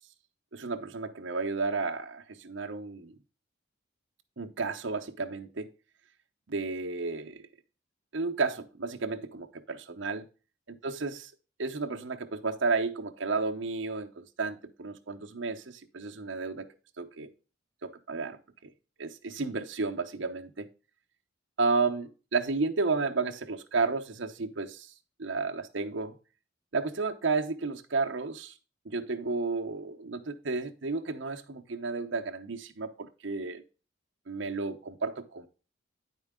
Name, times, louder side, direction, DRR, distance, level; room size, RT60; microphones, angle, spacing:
voice 1, 0.5-3.1 4.4-5.7 6.5-7.4 8.1-10.3 10.8-11.3 11.6-17.3 17.8-18.7 19.0-20.7 21.6-24.9 25.2-26.2 26.7-28.5 28.8-33.6 34.3-35.5, right 4 dB, 65° right, 0.8 m, -32 dB
9.9 x 4.5 x 3.5 m
head